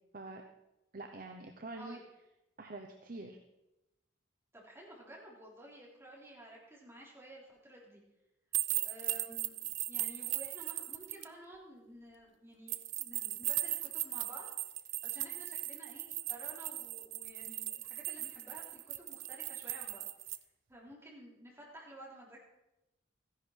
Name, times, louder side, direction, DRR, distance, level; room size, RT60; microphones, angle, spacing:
voice 1, 0.9-2.0 2.6-3.4, right 2 dB, 45° right, 4 dB, 0.9 m, -45 dB
voice 2, 4.5-8.0 8.8-14.5 15.0-20.1 20.7-22.4, right 1 dB, 15° right, -4 dB, 3.5 m, -53 dB
sound 1, 8.5-11.2 12.7-20.4, right 15 dB, 80° right, 0.6 m, -38 dB
14.5 x 11.0 x 4.6 m, 0.92 s
head